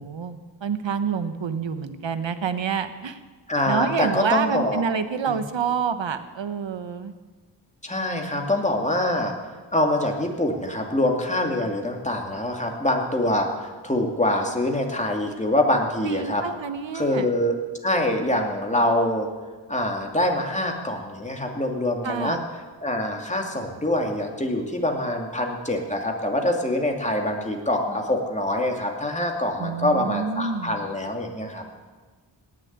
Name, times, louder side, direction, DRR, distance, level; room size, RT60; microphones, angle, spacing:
voice 1, 0.0-3.2 3.7-7.1 16.0-17.3 22.0-22.4 29.6-30.8, right 6 dB, 75° right, 11 dB, 1.2 m, -28 dB
voice 2, 3.5-4.8 5.3-5.4 7.8-9.3 9.7-16.4 16.9-17.6 17.8-19.3 19.7-22.4 22.8-31.6, left 1 dB, 15° left, 1 dB, 2.6 m, -25 dB
18.0 x 7.4 x 9.6 m, 1.4 s
wide cardioid pair, 70°, 46 cm